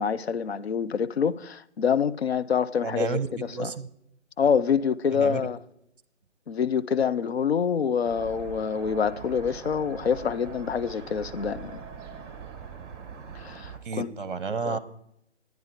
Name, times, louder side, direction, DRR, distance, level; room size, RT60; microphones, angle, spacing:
voice 1, 0.0-3.7 4.4-5.6 6.5-11.8 13.3-14.1 14.6-14.8, left 7 dB, 60° left, 0.6 m, -26 dB
voice 2, 2.8-3.9 5.1-5.4 13.8-14.8, right 5 dB, 45° right, 1.0 m, -31 dB
sound 1, 8.0-13.8, right 7 dB, 20° right, 1.5 m, -41 dB
12.0 x 9.4 x 4.5 m
figure-of-eight pair, 145°, 36 cm